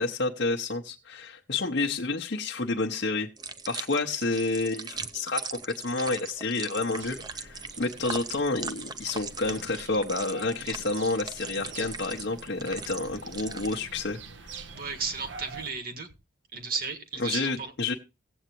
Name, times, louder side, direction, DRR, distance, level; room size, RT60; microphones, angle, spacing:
voice 1, 0.0-3.3 3.7-14.2 17.2-17.9, left 3 dB, 65° left, 0.9 m, -29 dB
sound 1, 3.4-13.8, right 5 dB, 20° right, 0.6 m, -40 dB
sound 2, 7.0-15.7, right 4 dB, 90° right, 1.1 m, -47 dB
voice 2, 14.7-16.1 16.5-17.7, right 5 dB, 50° right, 1.6 m, -34 dB
17.0 x 8.0 x 2.9 m
head